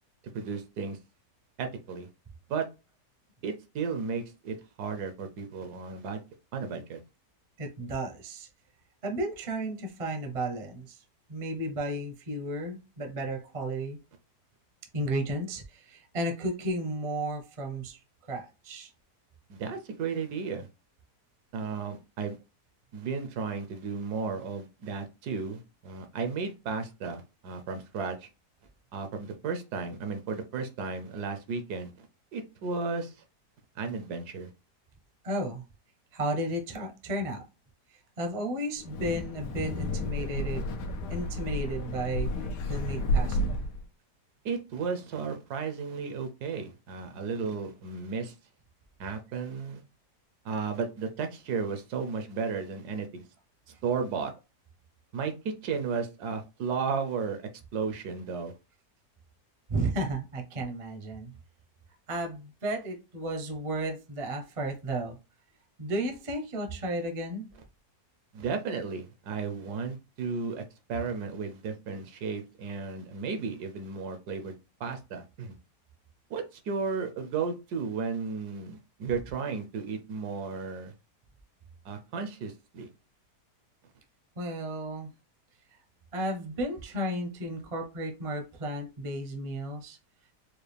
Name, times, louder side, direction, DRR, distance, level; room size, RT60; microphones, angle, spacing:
voice 1, 0.3-1.0 1.6-2.1 2.5-2.7 3.4-6.2 6.5-7.0 19.5-20.7 21.5-22.4 22.9-28.3 28.9-31.9 32.3-33.1 33.8-34.5 44.4-48.3 49.0-49.8 50.4-53.2 53.8-54.3 55.1-57.4 57.7-58.5 68.3-70.6 70.9-74.5 74.8-75.5 76.3-80.9 81.8-82.9, right 5 dB, 75° right, 7 dB, 1.2 m, -34 dB
voice 2, 7.6-8.5 9.0-11.0 11.3-14.0 14.9-18.0 18.3-18.9 35.2-35.6 36.1-37.4 38.2-40.7 41.1-42.3 42.7-43.6 59.7-61.3 62.1-65.2 65.8-67.5 84.4-85.1 86.1-90.0, right 1 dB, 35° right, 3 dB, 0.5 m, -33 dB
Wind, 38.8-43.8, left 1 dB, 85° left, 1.3 m, -31 dB
4.6 x 2.3 x 3.3 m, 0.28 s
omnidirectional pair, 1.8 m